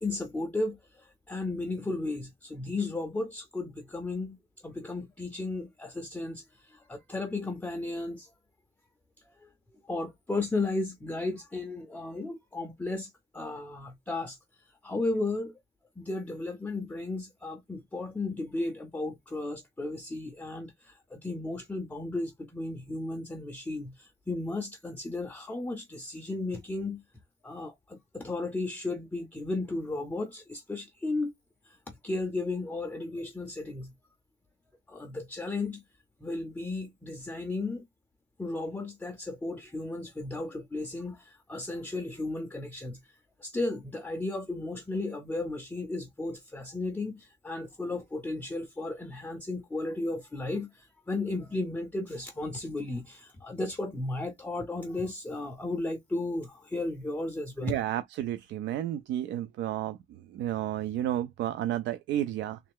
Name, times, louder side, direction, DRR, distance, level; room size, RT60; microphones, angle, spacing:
voice 1, 0.0-8.3 9.2-9.5 9.9-14.4 14.8-15.5 16.0-27.0 27.4-31.3 31.6-33.9 34.9-35.8 36.2-37.8 38.4-43.0 43.4-57.7, left 2 dB, 10° left, 0.5 m, -34 dB
voice 2, 57.6-62.6, right 12 dB, 60° right, 0.4 m, -32 dB
3.2 x 3.1 x 3.4 m
cardioid pair, 165°, 21 cm